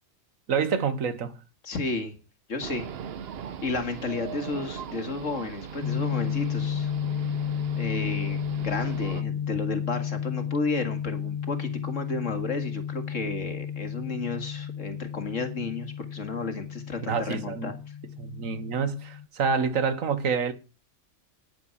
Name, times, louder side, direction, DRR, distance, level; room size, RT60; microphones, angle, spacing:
voice 1, 0.5-1.3 17.0-17.7 18.2-20.5, right 6 dB, 85° right, 1.6 m, -27 dB
voice 2, 1.6-2.2 2.5-2.9 3.6-6.9 7.2-7.3 7.7-18.0, left 3 dB, 70° left, 2.3 m, -32 dB
sound 1, 2.6-9.2, right 7 dB, 55° right, 0.9 m, -39 dB
sound 2, 5.8-19.3, left 8 dB, 45° left, 0.7 m, -32 dB
10.0 x 9.2 x 7.1 m
omnidirectional pair, 1.4 m